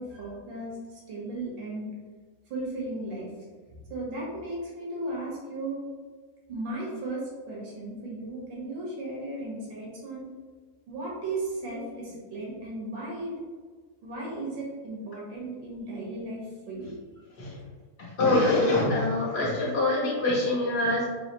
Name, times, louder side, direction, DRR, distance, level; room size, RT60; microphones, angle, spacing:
voice 1, 0.0-1.9 2.5-3.3 3.7-5.8 6.5-10.3 10.9-13.3 14.0-16.9, right 2 dB, 75° right, -5 dB, 2.1 m, -35 dB
voice 2, 18.0-21.0, left 2 dB, 60° left, -6 dB, 1.8 m, -24 dB
4.9 x 3.2 x 3.0 m, 1.5 s
omnidirectional pair, 2.0 m